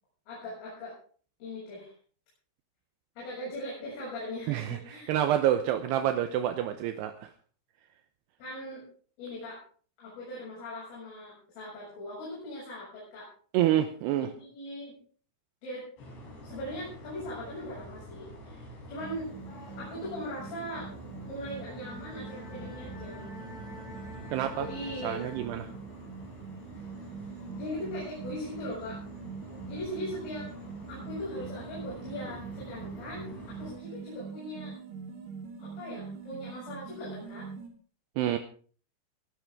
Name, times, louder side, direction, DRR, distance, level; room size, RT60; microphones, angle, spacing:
voice 1, 0.3-1.0 1.4-1.9 3.2-5.1 8.4-8.9 9.2-9.6 10.0-13.3 14.2-15.0 15.6-15.9 16.4-19.3 19.8-20.9 21.3-23.3 24.6-25.2 27.5-29.0 29.6-30.5 30.9-34.7 35.6-37.5, left 1 dB, 80° left, -5 dB, 9.6 m, -40 dB
voice 2, 4.5-7.3 13.5-14.3 24.3-24.7 25.0-25.7 38.2-38.4, right 11 dB, 80° right, 8 dB, 2.6 m, -28 dB
sound 1, 16.0-33.7, equal, 65° left, 8.7 m, -47 dB
sound 2, 19.0-37.7, right 5 dB, 50° right, 3.9 m, -44 dB
Bowed string instrument, 21.5-26.2, left 1 dB, 40° left, 4.3 m, -49 dB
21.5 x 12.0 x 3.7 m, 0.43 s
omnidirectional pair, 5.6 m